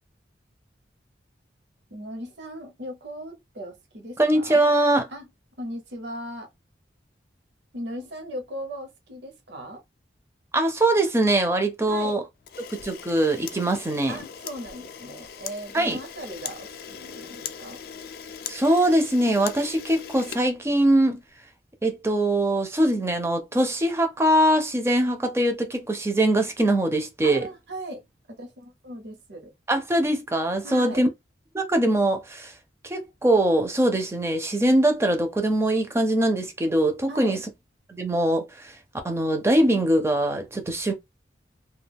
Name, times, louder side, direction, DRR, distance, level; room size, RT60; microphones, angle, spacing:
voice 1, 1.9-4.6 5.1-5.3 5.6-6.5 7.7-9.8 11.9-12.2 14.1-17.8 27.2-29.5 30.6-31.1 37.1-37.4, equal, 70° right, 0.8 m, -38 dB
voice 2, 4.2-5.1 10.5-12.2 12.7-14.2 15.7-16.0 18.5-21.2 21.8-27.4 29.7-31.1 31.5-32.5 32.8-37.4 37.9-38.8 39.0-40.9, right 1 dB, 15° right, 0.4 m, -22 dB
Camera, 12.4-21.2, left 7 dB, 55° left, 0.3 m, -40 dB
2.3 x 2.2 x 3.4 m
head